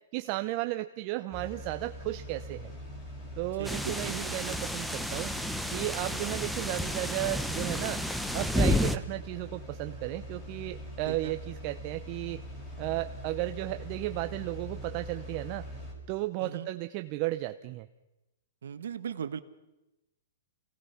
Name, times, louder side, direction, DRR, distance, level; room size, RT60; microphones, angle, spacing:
voice 1, 0.1-2.7 3.4-5.3 5.7-8.0 8.3-12.4 12.8-15.7 16.1-17.9, right 17 dB, 35° right, 9 dB, 0.6 m, -34 dB
sound 1, 1.3-15.9, equal, 20° left, 5.7 m, -43 dB
sound 2, 3.6-9.0, left 1 dB, ahead, 0.8 m, -31 dB
voice 2, 3.6-4.5 11.1-11.4 16.4-16.7 18.6-19.4, right 8 dB, 80° right, 11 dB, 1.3 m, -39 dB
26.0 x 17.5 x 5.8 m, 0.99 s
hypercardioid pair, 155°, 0 cm